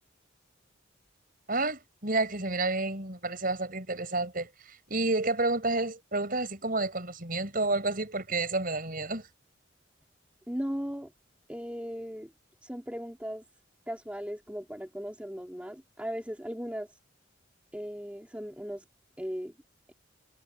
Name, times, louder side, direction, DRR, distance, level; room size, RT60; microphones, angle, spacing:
voice 1, 1.5-9.3, right 2 dB, 45° right, 5.9 m, -30 dB
voice 2, 10.5-11.1 11.5-12.3 12.6-13.4 13.9-16.9 17.7-18.8 19.2-19.5, equal, 5° right, 2.4 m, -37 dB
head